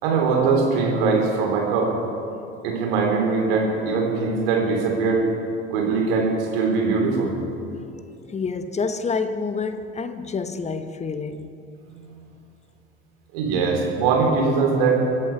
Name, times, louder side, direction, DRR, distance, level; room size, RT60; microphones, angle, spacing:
voice 1, 0.0-1.9 2.6-5.3 5.7-7.3 11.9-12.0 13.3-15.0, right 4 dB, 65° right, 3.6 m, -21 dB
voice 2, 8.3-11.6, left 4 dB, 20° left, 1.1 m, -28 dB
25.5 x 11.5 x 4.7 m
figure-of-eight pair, 65°, 32 cm